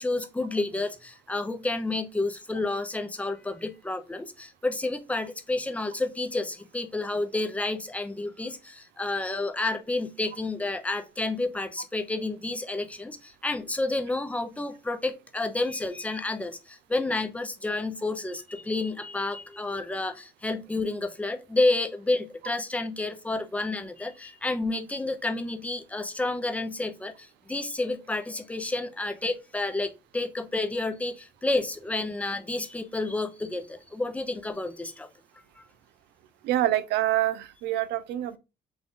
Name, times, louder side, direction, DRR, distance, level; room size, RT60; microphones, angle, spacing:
voice 1, 0.0-27.1 27.5-35.1, left 2 dB, 10° left, 0.7 m, -30 dB
voice 2, 36.4-38.4, right 13 dB, 80° right, 0.6 m, -26 dB
6.1 x 2.4 x 3.7 m
cardioid pair, 110°, 17 cm